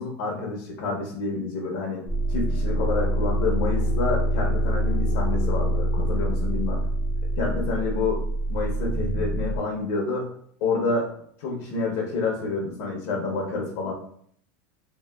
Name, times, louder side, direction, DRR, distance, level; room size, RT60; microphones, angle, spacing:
voice 1, 0.0-2.0 2.3-6.8 7.4-8.2 8.5-10.3 10.6-11.1 11.4-13.9, left 3 dB, 65° left, -1 dB, 0.7 m, -28 dB
sound 1, 2.1-9.6, equal, 10° right, 0.8 m, -25 dB
2.9 x 2.7 x 2.3 m, 0.64 s
supercardioid pair, 145°, 8 cm